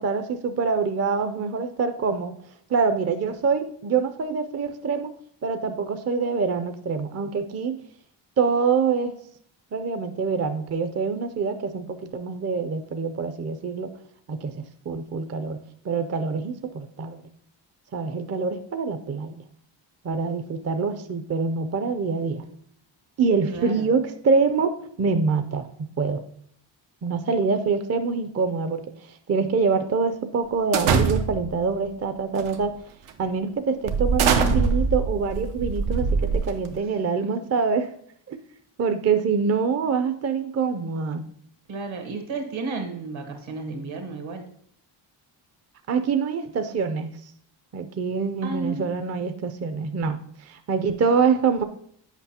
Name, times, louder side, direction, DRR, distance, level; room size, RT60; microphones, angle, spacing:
voice 1, 0.0-2.4 2.7-5.1 5.4-7.8 8.4-9.2 9.7-13.9 14.3-15.6 15.8-17.3 17.9-19.4 20.0-22.4 23.2-26.2 27.0-32.7 33.2-37.9 38.3-38.4 38.8-41.2 45.9-47.1 47.7-51.6, right 5 dB, 35° right, 8 dB, 0.5 m, -25 dB
voice 2, 23.5-23.9 37.2-37.5 41.7-44.4 48.4-48.9, right 3 dB, 75° right, 4 dB, 1.5 m, -33 dB
sound 1, 30.7-31.6 32.4-32.6 33.1-33.2 33.9-36.8, right 5 dB, 90° right, 0.8 m, -23 dB
8.1 x 5.2 x 2.8 m, 0.65 s
cardioid pair, 90°, 48 cm